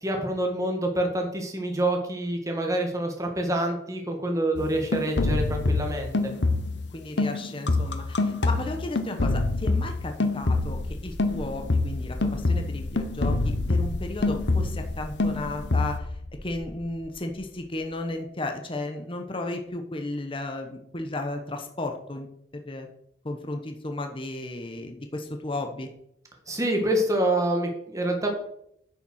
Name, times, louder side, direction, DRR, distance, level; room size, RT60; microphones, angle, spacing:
voice 1, 0.0-6.3 26.5-28.3, right 1 dB, 20° right, 2 dB, 2.1 m, -27 dB
sound 1, 4.6-6.9 7.2-10.9 11.2-14.9 15.2-16.0, left 2 dB, 75° left, 1.1 m, -26 dB
voice 2, 6.9-16.1 16.4-22.3 22.5-22.9 23.2-25.9, left 2 dB, 30° left, 4 dB, 1.1 m, -34 dB
sound 2, 10.4-18.0, left 1 dB, 50° left, 1.4 m, -38 dB
9.8 x 6.9 x 6.4 m, 0.73 s
head